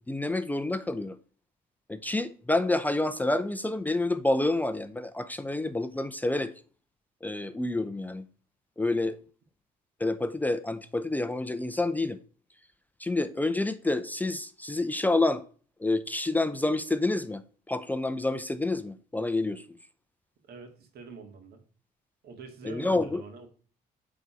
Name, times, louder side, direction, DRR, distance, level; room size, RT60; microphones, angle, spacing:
voice 1, 0.1-1.2 1.9-6.5 7.2-8.2 8.8-9.2 10.0-12.2 13.0-15.4 15.8-17.4 17.7-19.6 22.6-23.2, left 2 dB, 10° left, 0.5 m, -28 dB
voice 2, 20.5-21.6 22.2-23.5, right 5 dB, 70° right, 2.1 m, -45 dB
8.6 x 4.1 x 4.9 m
cardioid pair, 110°, 17 cm